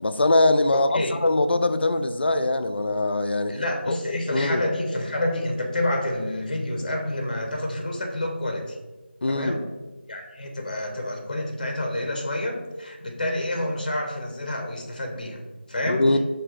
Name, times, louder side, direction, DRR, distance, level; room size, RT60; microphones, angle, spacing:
voice 1, 0.0-3.6 3.9-4.0 4.3-4.6 9.2-9.6 15.9-16.2, left 2 dB, 70° left, 0.4 m, -22 dB
voice 2, 0.7-1.1 3.5-8.8 9.3-9.7 10.1-16.2, left 1 dB, 45° left, 0.8 m, -28 dB
7.1 x 2.7 x 2.4 m
figure-of-eight pair, 175°, 6 cm